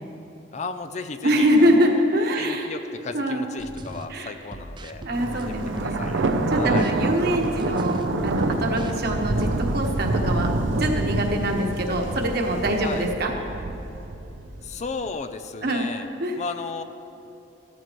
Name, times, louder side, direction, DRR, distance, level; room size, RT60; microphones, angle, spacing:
voice 1, 0.5-2.0 2.4-6.9 12.8-13.1 14.6-16.1 16.3-16.8, left 4 dB, 40° left, 10 dB, 0.4 m, -35 dB
voice 2, 1.2-2.7 3.1-3.5 4.1-4.3 5.0-6.0 6.5-13.3 15.6-15.9 16.2-16.3, equal, 55° right, 1 dB, 1.4 m, -24 dB
sound 1, 3.6-4.1 4.5-8.1 8.5-9.7, right 1 dB, 25° right, 0.5 m, -38 dB
Thunder, 5.1-15.0, right 2 dB, 80° right, 0.7 m, -27 dB
14.5 x 13.5 x 3.1 m, 2.9 s
head